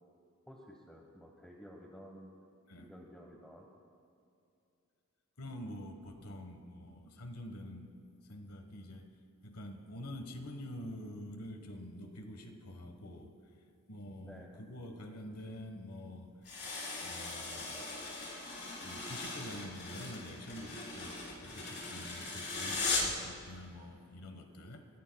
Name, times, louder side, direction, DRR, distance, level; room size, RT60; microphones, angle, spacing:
voice 1, 0.5-2.3 2.7-3.7 14.2-14.6, equal, 5° left, -1 dB, 1.2 m, -52 dB
voice 2, 5.4-7.9 8.2-9.1 9.4-13.4 13.9-16.3 17.0-17.9 18.8-24.9, left 1 dB, 80° left, 5 dB, 1.3 m, -47 dB
sound 1, 16.4-23.2, left 3 dB, 50° left, 4.1 m, -39 dB
29.5 x 17.0 x 2.3 m, 2.5 s
head